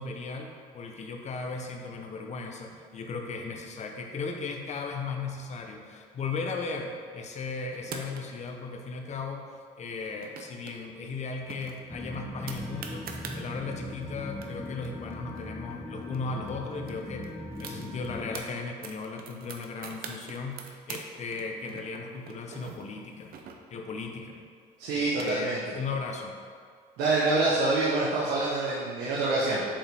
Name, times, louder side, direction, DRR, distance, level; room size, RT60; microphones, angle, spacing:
voice 1, 0.0-9.5 9.8-13.1 13.3-17.3 17.6-23.3 23.7-24.4 24.9-26.4, left 4 dB, 40° left, 3 dB, 0.9 m, -36 dB
sound 1, 7.7-8.5 10.0-10.8 11.1-11.2 11.5-13.4 14.0-14.1 14.3-16.2 16.5-16.6 16.8-18.5 18.8-21.1 21.3-23.9 24.8-25.7, right 6 dB, 60° right, 0.7 m, -44 dB
sound 2, 11.9-18.4, left 1 dB, ahead, 1.0 m, -39 dB
voice 2, 24.8-25.6 27.0-29.6, right 2 dB, 90° right, -6 dB, 1.1 m, -26 dB
7.2 x 5.0 x 3.5 m, 2.1 s
cardioid pair, 110°, 17 cm